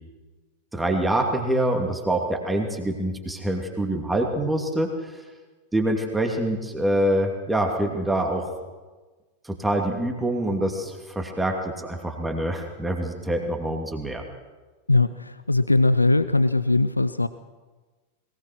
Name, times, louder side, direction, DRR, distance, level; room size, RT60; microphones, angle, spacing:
voice 1, 0.7-5.1 5.7-8.5 9.4-14.2, right 1 dB, 5° right, 2 dB, 2.7 m, -25 dB
voice 2, 14.9-17.3, left 2 dB, 85° left, 14 dB, 0.5 m, -20 dB
21.0 x 19.5 x 6.3 m, 1.3 s
figure-of-eight pair, 90°, 0 cm